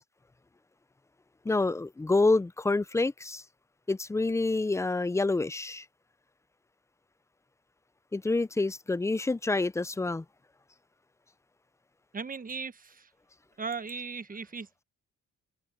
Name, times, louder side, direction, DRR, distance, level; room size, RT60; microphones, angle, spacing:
voice 1, 1.5-3.4 3.9-5.8 8.1-10.2, left 3 dB, 10° left, 0.4 m, -27 dB
voice 2, 12.1-13.1 13.6-14.7, right 5 dB, 30° right, 1.3 m, -37 dB
open air
cardioid pair, 90°, 30 cm